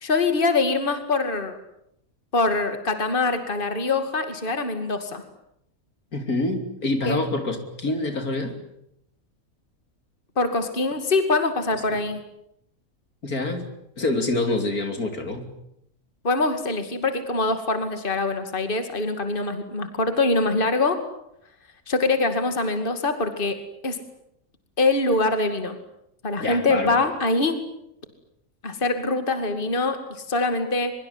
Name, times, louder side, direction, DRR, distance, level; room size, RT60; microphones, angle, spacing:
voice 1, 0.0-1.6 2.3-5.2 7.0-7.2 10.4-12.2 16.2-21.0 21.9-23.6 23.8-24.0 24.8-25.8 26.2-27.6 28.6-30.9, left 3 dB, 35° left, 8 dB, 2.6 m, -24 dB
voice 2, 6.1-8.6 11.9-12.0 13.2-13.7 14.0-15.5 26.4-27.0, left 2 dB, 75° left, 6 dB, 3.8 m, -26 dB
23.5 x 23.0 x 9.7 m, 0.77 s
omnidirectional pair, 1.6 m